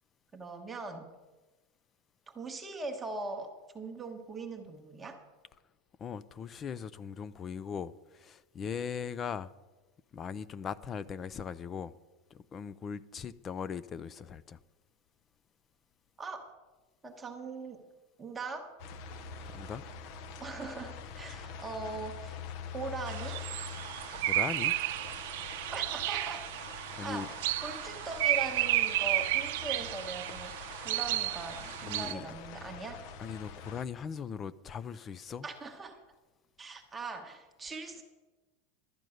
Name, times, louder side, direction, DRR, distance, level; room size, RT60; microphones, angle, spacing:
voice 1, 0.3-1.1 2.3-3.5 3.7-5.2 16.2-16.5 17.0-17.8 18.2-18.7 20.4-22.3 22.7-23.5 25.7-26.5 27.0-30.5 30.8-33.1 35.4-36.0 36.6-38.0, right 3 dB, 10° right, 1.0 m, -40 dB
voice 2, 6.0-9.5 10.1-11.9 12.3-14.6 19.5-19.8 24.1-24.7 27.0-27.3 31.8-32.3 33.2-35.5, left 6 dB, 20° left, 0.3 m, -39 dB
sound 1, 18.8-33.9, left 6 dB, 45° left, 0.7 m, -45 dB
sound 2, 23.1-32.1, right 15 dB, 65° right, 0.6 m, -32 dB
12.0 x 9.2 x 6.4 m
supercardioid pair, 165°, 0 cm